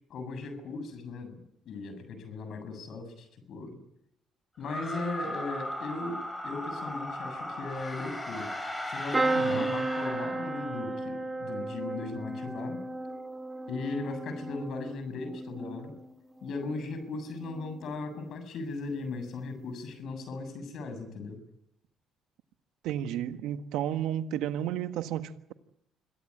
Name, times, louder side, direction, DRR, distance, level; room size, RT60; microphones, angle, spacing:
voice 1, 0.1-3.8 4.6-8.5 8.9-12.8 13.7-15.9 16.4-21.4, left 3 dB, 65° left, 7.1 m, -38 dB
sound 1, 4.6-11.0, left 1 dB, 15° left, 7.7 m, -37 dB
sound 2, 9.1-17.0 17.4-18.0 19.2-19.4 19.7-19.8, right 2 dB, 20° right, 2.1 m, -34 dB
voice 2, 9.3-9.7 22.8-25.5, right 11 dB, 80° right, 1.5 m, -32 dB
26.0 x 16.0 x 10.0 m
supercardioid pair, 65°, 0 cm